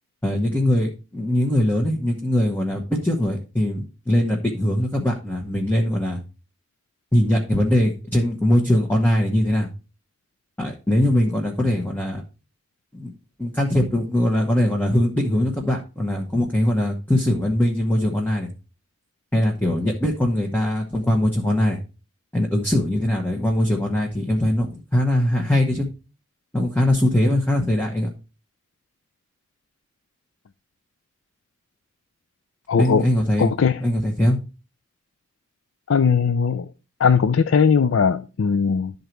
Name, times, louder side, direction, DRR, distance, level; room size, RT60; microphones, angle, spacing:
voice 1, 0.2-6.2 7.1-9.7 10.6-12.2 12.9-13.1 13.4-18.5 19.3-21.8 22.3-25.9 26.5-28.1 32.8-33.5 33.8-34.4, left 1 dB, 10° left, 1.0 m, -21 dB
voice 2, 32.7-33.1 33.4-33.8 35.9-36.7 37.0-38.9, left 6 dB, 80° left, 0.4 m, -19 dB
12.0 x 4.0 x 4.5 m
head